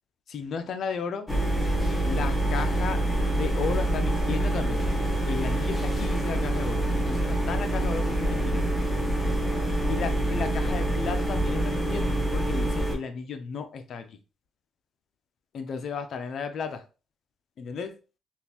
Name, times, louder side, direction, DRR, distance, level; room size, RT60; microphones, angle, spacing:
voice 1, 0.3-1.3 2.0-4.8 5.3-8.6 9.9-14.2 15.5-16.8 17.6-17.9, left 5 dB, 60° left, 0.5 m, -34 dB
sound 1, 1.3-13.0, right 1 dB, 15° left, 1.0 m, -26 dB
3.6 x 2.5 x 2.9 m
cardioid pair, 90°, 0 cm